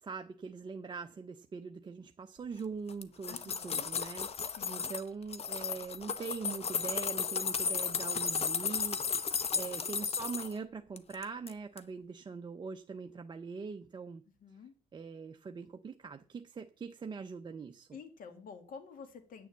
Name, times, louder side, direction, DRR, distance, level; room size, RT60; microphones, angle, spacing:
voice 1, 0.0-4.3 4.7-9.0 9.5-14.2 14.9-17.9, right 5 dB, 25° right, 5 dB, 0.6 m, -42 dB
sound 1, 2.9-5.0 5.3-10.5 11.0-11.5 11.8-11.9, left 6 dB, 35° left, 0.9 m, -34 dB
voice 2, 3.3-3.9 4.6-4.9 9.5-9.7 14.4-14.7 17.9-19.5, left 5 dB, 55° left, 9 dB, 2.0 m, -50 dB
9.1 x 7.0 x 7.3 m, 0.41 s
cardioid pair, 110°, 17 cm